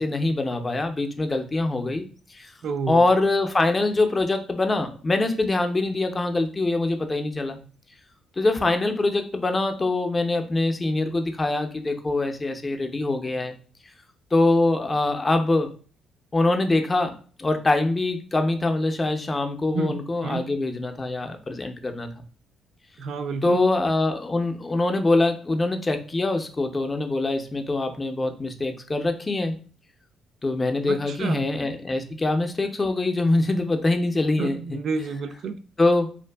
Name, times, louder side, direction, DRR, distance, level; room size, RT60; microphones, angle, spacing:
voice 1, 0.0-2.0 2.3-2.5 2.9-7.6 8.4-13.6 14.3-15.7 16.3-22.1 23.4-29.5 30.4-34.8 35.8-36.2, left 2 dB, 25° left, 6 dB, 0.4 m, -24 dB
voice 2, 2.6-3.0 19.7-20.5 23.0-23.6 30.9-31.5 34.4-35.6, right 4 dB, 65° right, 9 dB, 0.3 m, -30 dB
2.5 x 2.5 x 2.2 m, 0.40 s
cardioid pair, 90°, 0 cm